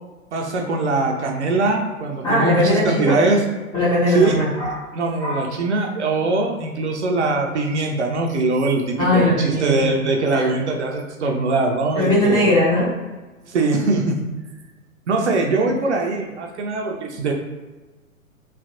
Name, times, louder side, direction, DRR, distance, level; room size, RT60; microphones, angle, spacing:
voice 1, 0.3-3.4 4.1-4.4 4.9-12.5 13.5-14.2 15.1-17.3, right 3 dB, 55° right, 2 dB, 0.6 m, -21 dB
voice 2, 2.2-3.2 3.7-4.9 5.2-5.4 9.0-9.9 10.3-10.5 11.9-12.9, left 1 dB, 10° left, -9 dB, 0.5 m, -19 dB
3.2 x 2.5 x 2.6 m, 1.2 s
figure-of-eight pair, 115°, 43 cm